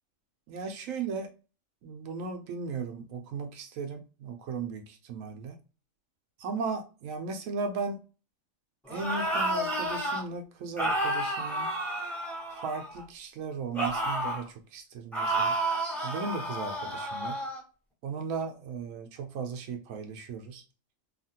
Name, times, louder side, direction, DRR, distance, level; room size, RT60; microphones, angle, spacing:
voice 1, 0.5-1.3 1.8-5.6 6.4-8.0 8.9-11.7 12.5-15.6 16.0-17.4 18.0-20.6, right 4 dB, 85° right, 5 dB, 1.0 m, -36 dB
sound 1, 8.9-10.2 10.8-13.0 13.7-14.5 15.1-17.6, right 1 dB, ahead, 0.7 m, -31 dB
2.8 x 2.4 x 2.7 m, 0.34 s
omnidirectional pair, 1.4 m